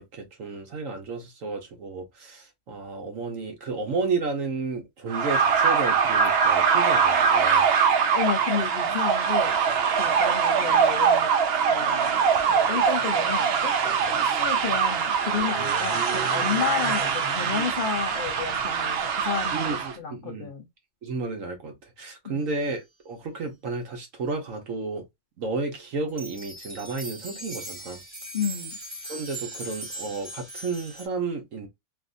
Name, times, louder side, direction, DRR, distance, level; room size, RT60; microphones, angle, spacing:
voice 1, 0.0-7.7 19.5-20.5 21.0-25.0 25.4-28.0 29.1-31.7, right 4 dB, 60° right, 1.2 m, -32 dB
sound 1, 5.1-19.9, right 6 dB, 80° right, 0.5 m, -23 dB
voice 2, 8.1-9.6 10.0-11.3 11.7-12.2 12.5-20.7 22.2-22.5 28.3-28.8, left 7 dB, 65° left, 0.5 m, -31 dB
sound 2, 26.1-31.1, right 1 dB, 15° right, 1.6 m, -39 dB
3.4 x 2.5 x 2.5 m
omnidirectional pair, 1.7 m